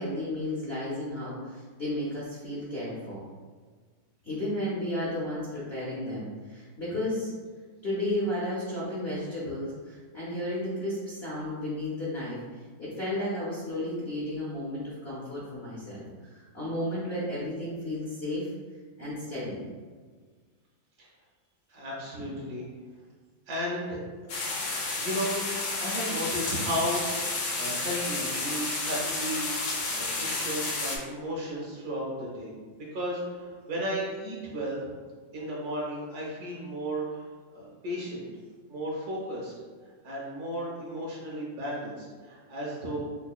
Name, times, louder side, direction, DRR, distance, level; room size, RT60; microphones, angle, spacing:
voice 1, 0.0-3.2 4.2-7.3 7.8-12.4 12.8-18.5 19.0-19.6 29.9-30.2, left 1 dB, 50° left, -9 dB, 0.7 m, -33 dB
voice 2, 21.7-22.6 23.5-24.0 24.2-24.5 25.0-25.4 25.8-32.5 32.9-34.9 35.3-38.3 38.7-39.5 40.0-43.0, equal, 60° right, -4 dB, 1.3 m, -34 dB
sound 1, 24.3-31.0, left 3 dB, 75° left, 1.3 m, -31 dB
5.6 x 2.2 x 2.3 m, 1.5 s
omnidirectional pair, 2.1 m